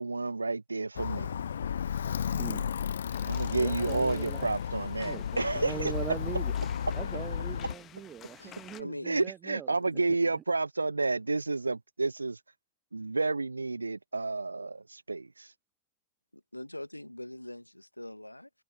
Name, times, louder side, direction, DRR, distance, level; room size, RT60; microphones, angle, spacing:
voice 1, 0.0-1.4 3.2-5.9 9.1-12.4 12.9-15.5, right 3 dB, 80° right, 0.8 m, -30 dB
Alarm, 1.0-7.7, left 8 dB, 65° left, 0.6 m, -33 dB
sound 1, 3.1-8.8, left 11 dB, 30° left, 1.5 m, -52 dB
voice 2, 3.5-4.5 5.0-6.5 6.9-9.7, right 9 dB, 25° right, 0.7 m, -41 dB
voice 3, 8.4-9.3 9.7-10.0 16.3-18.5, left 1 dB, 85° left, 1.3 m, -43 dB
figure-of-eight pair, 90°, 0 cm